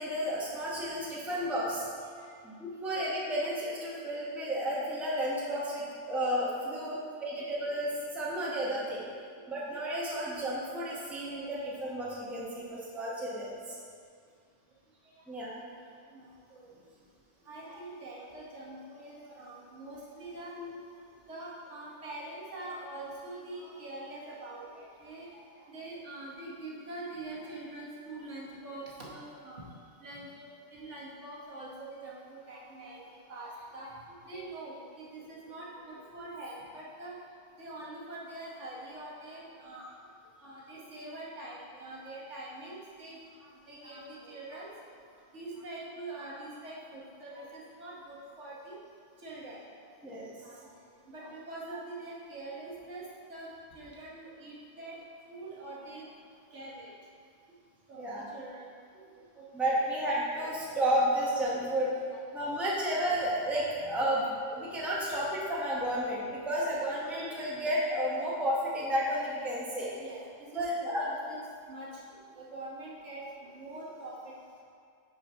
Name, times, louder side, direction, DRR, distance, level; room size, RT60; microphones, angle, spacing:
voice 1, 0.0-1.9 2.4-9.0 9.5-13.8 15.3-15.6 20.6-20.8 50.0-50.3 58.0-58.2 59.5-61.9 62.3-69.9 70.5-71.1, equal, ahead, -7 dB, 0.9 m, -32 dB
voice 2, 2.0-2.3 6.9-7.2 9.3-9.4 15.0-15.2 16.1-16.7 17.4-20.5 21.3-29.6 30.0-37.2 37.6-40.0 40.4-44.7 45.3-48.8 49.2-49.6 49.9-50.0 50.4-50.7 51.1-55.0 55.3-56.1 56.5-56.9 57.9-59.0 59.3-59.4 61.8-62.2 62.4-62.6 64.5-64.6 70.0-71.0 71.3-71.4 71.7-72.0 72.3-73.2 73.5-74.4, right 2 dB, 70° right, -5 dB, 1.5 m, -44 dB
4.6 x 4.5 x 5.4 m, 2.2 s
omnidirectional pair, 1.3 m